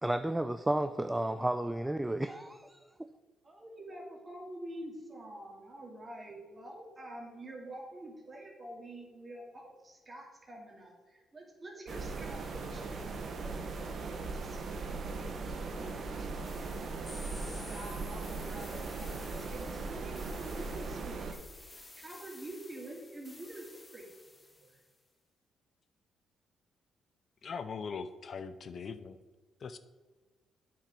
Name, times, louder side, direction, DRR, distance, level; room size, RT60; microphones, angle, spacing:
voice 1, 0.0-2.8, right 1 dB, 10° right, 0.3 m, -32 dB
voice 2, 3.4-24.8, right 1 dB, 30° right, 2.3 m, -48 dB
room tone quiet cellar with distant noises, 11.9-21.3, right 3 dB, 55° right, 1.1 m, -39 dB
sound 1, 16.4-24.9, left 2 dB, 20° left, 1.0 m, -53 dB
voice 3, 27.4-29.2 29.6-29.8, left 5 dB, 50° left, 0.5 m, -40 dB
8.5 x 5.7 x 5.2 m
cardioid pair, 90°, 0 cm